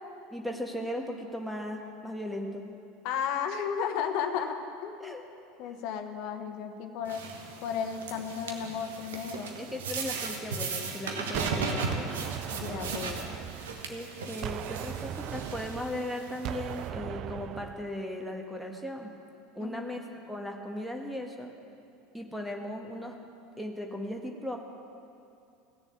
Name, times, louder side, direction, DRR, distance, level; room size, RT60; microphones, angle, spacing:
voice 1, 0.3-2.6 4.0-4.3 5.0-5.2 9.5-12.1 13.9-19.1 19.5-21.5 22.1-23.2 23.6-24.6, left 1 dB, ahead, 2 dB, 1.6 m, -37 dB
voice 2, 3.0-5.1 5.6-7.3 7.6-9.5 12.5-13.4 19.6-19.9, left 7 dB, 55° left, 6 dB, 1.1 m, -34 dB
sound 1, 7.0-16.9, right 4 dB, 70° right, 1.3 m, -37 dB
Gunshot gunfire, 11.3-14.1 14.4-18.0, right 11 dB, 45° right, 0.3 m, -38 dB
16.5 x 7.0 x 8.1 m, 2.5 s
figure-of-eight pair, 75°, 0 cm